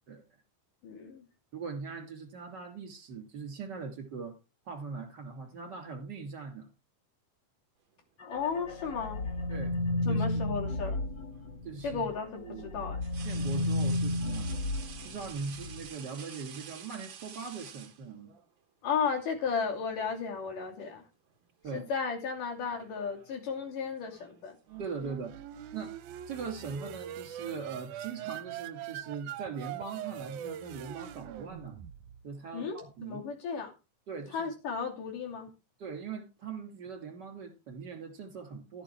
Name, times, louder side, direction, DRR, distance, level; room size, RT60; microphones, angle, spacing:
voice 1, 0.8-1.3 8.3-9.2 10.1-11.0 11.8-13.0 18.8-21.0 21.7-24.6 32.5-32.8 33.0-33.7 34.3-35.5, left 6 dB, 75° left, 1 dB, 4.4 m, -34 dB
voice 2, 1.5-4.3 4.6-6.7 9.5-9.8 10.1-10.6 11.6-12.1 12.4-12.8 13.2-14.5 15.0-18.3 21.6-21.9 24.8-25.3 25.7-25.9 26.3-31.8 32.2-33.2 34.1-34.5 35.8-38.8, right 5 dB, 35° right, 6 dB, 3.0 m, -41 dB
sound 1, 8.2-12.1 12.5-15.8, left 2 dB, 45° left, 1.5 m, -33 dB
sound 2, 8.7-9.6 11.3-11.5 13.0-18.5 19.7-19.9 20.3-21.0 21.3-21.7 22.5-25.1, right 8 dB, 55° right, 1.4 m, -50 dB
sound 3, 24.7-32.3, right 11 dB, 75° right, 2.1 m, -42 dB
15.0 x 7.0 x 4.7 m, 0.29 s
omnidirectional pair, 3.8 m